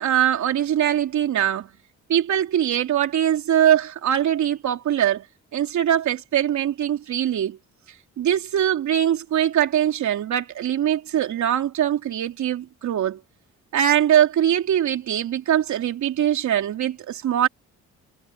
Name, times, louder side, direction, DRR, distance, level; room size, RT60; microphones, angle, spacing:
voice 1, 0.0-1.7 2.1-5.2 5.5-7.6 8.2-13.2 13.7-17.5, right 10 dB, 70° right, 3.6 m, -22 dB
cardioid pair, 90°, 30 cm